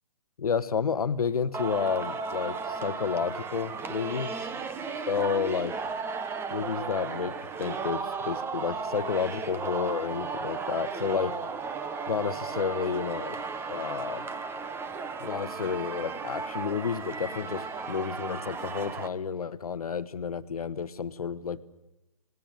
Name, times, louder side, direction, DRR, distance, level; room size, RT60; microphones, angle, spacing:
voice 1, 0.4-4.5 5.1-5.8 6.5-11.4 12.1-13.4 13.7-14.3 15.2-21.6, left 6 dB, 80° left, 13 dB, 1.6 m, -31 dB
Singing, 1.5-19.1, right 5 dB, 10° right, 1.3 m, -35 dB
28.0 x 19.5 x 9.4 m, 0.94 s
hypercardioid pair, 140°, 19 cm